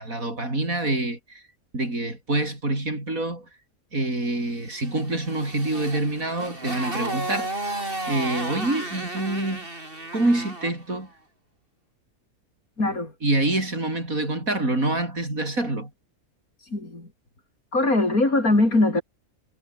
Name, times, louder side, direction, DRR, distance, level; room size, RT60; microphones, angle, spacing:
voice 1, 0.0-1.4 1.7-3.5 3.9-7.6 8.1-9.7 10.1-11.1 13.2-15.9, right 2 dB, 65° right, 7.5 m, -26 dB
Motorcycle, 4.8-10.8, right 2 dB, 35° right, 5.2 m, -33 dB
voice 2, 12.8-13.1 16.7-17.1 17.7-19.0, left 2 dB, 70° left, 6.3 m, -21 dB
omnidirectional pair, 1.6 m